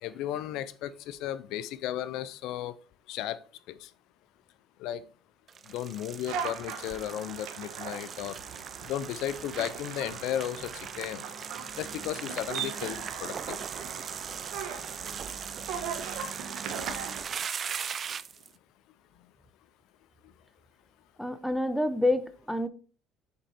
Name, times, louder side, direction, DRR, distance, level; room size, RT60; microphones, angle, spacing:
voice 1, 0.0-2.7 3.1-3.4 3.7-3.9 4.8-5.0 5.7-8.4 8.8-11.3 11.8-13.6, left 12 dB, 70° left, 16 dB, 0.4 m, -35 dB
sound 1, 5.5-18.5, right 7 dB, 35° right, 0.4 m, -39 dB
sound 2, 6.2-17.2, right 6 dB, 70° right, 1.3 m, -39 dB
voice 2, 21.2-22.7, left 1 dB, ahead, 11 dB, 0.7 m, -28 dB
6.6 x 4.5 x 4.1 m, 0.38 s
supercardioid pair, 105°, 0 cm